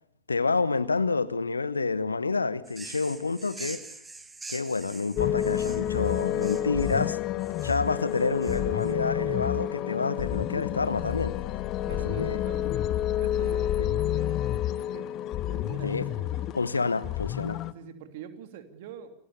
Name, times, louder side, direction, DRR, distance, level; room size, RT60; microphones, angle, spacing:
voice 1, 0.3-3.8 4.5-7.2 7.6-11.3 12.0-12.4 13.8-13.9 15.8-16.1 16.5-17.6, left 4 dB, 80° left, 1.1 m, -28 dB
sound 1, 2.7-8.9, right 3 dB, 10° right, 1.7 m, -45 dB
sound 2, 5.1-17.7, left 12 dB, 35° left, 1.1 m, -29 dB
voice 2, 6.0-7.2 11.8-12.9 13.2-15.1 15.4-16.5 17.7-19.3, right 8 dB, 50° right, 3.0 m, -46 dB
sound 3, 8.2-9.4 10.9-14.2, left 13 dB, 55° left, 3.4 m, -42 dB
28.5 x 18.0 x 6.9 m
figure-of-eight pair, 90°, 0 cm